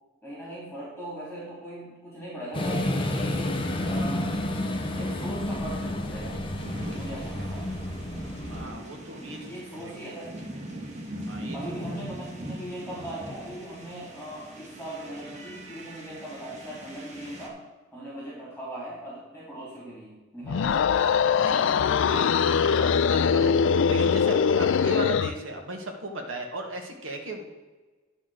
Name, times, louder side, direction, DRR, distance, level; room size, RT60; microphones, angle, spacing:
voice 1, 0.2-4.4 4.9-6.4 6.9-7.8 9.5-10.4 11.5-17.6 17.9-20.8, right 1 dB, 5° left, -7 dB, 3.2 m, -39 dB
sound 1, 2.5-8.7, left 1 dB, 25° left, 0.9 m, -30 dB
sound 2, 6.6-17.5, right 1 dB, 35° right, 1.5 m, -40 dB
voice 2, 8.5-9.5 9.8-9.9 11.3-11.6 21.4-23.6 23.9-27.5, right 1 dB, 75° right, 2 dB, 1.6 m, -36 dB
sound 3, 20.4-25.4, left 6 dB, 65° left, 0.4 m, -22 dB
10.5 x 4.3 x 6.4 m, 1.2 s
head